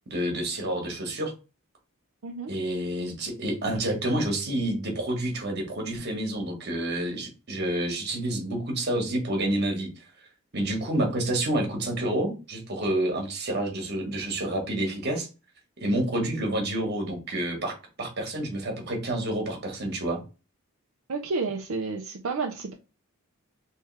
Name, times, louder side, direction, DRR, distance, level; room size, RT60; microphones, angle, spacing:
voice 1, 0.1-1.3 2.5-9.9 10.5-15.3 15.8-20.2, right 1 dB, 45° right, 2 dB, 1.3 m, -29 dB
voice 2, 21.1-22.7, right 4 dB, 70° right, 2 dB, 0.5 m, -30 dB
3.5 x 3.2 x 3.2 m, 0.30 s
head